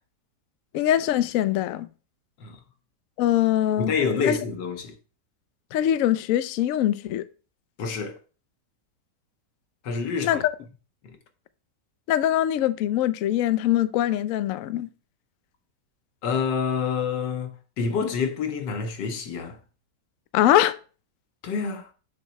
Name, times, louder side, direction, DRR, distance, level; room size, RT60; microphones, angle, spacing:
voice 1, 0.7-1.9 3.2-3.9 4.2-4.4 5.7-7.2 10.2-10.4 12.1-14.9 20.3-20.8, left 12 dB, 70° left, 0.8 m, -22 dB
voice 2, 3.8-4.9 7.8-8.2 9.8-10.4 11.0-11.2 16.2-19.6 21.4-21.9, left 5 dB, 85° left, 1.7 m, -27 dB
7.3 x 3.1 x 5.7 m
omnidirectional pair, 1.8 m